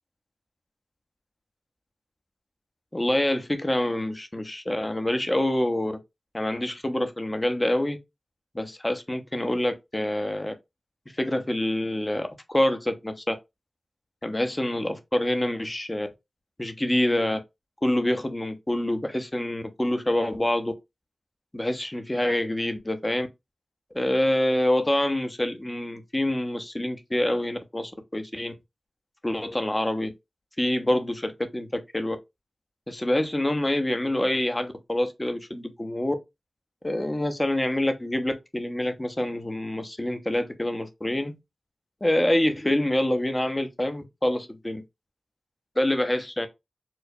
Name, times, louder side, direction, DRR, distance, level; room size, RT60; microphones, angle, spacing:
voice 1, 2.9-6.0 6.3-8.0 8.5-10.5 11.2-13.4 14.2-16.1 16.6-17.4 17.8-20.7 21.5-23.3 23.9-28.5 29.2-30.1 30.6-32.2 32.9-36.1 36.8-41.4 42.0-44.8 45.8-46.5, left 1 dB, 20° left, 0.8 m, -26 dB
4.5 x 2.1 x 2.7 m
cardioid pair, 40°, 0 cm